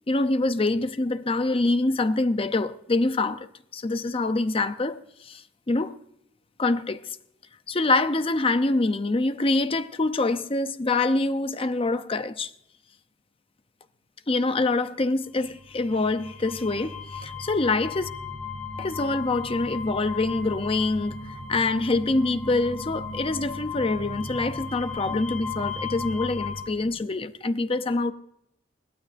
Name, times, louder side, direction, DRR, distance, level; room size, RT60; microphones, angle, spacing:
voice 1, 0.1-3.5 3.7-5.9 6.6-7.0 7.7-12.5 14.3-18.1 18.8-21.1 21.5-28.1, left 2 dB, 30° left, 0.6 m, -25 dB
sound 1, 15.6-26.6, left 4 dB, 60° left, 2.4 m, -36 dB
21.5 x 15.5 x 2.6 m
head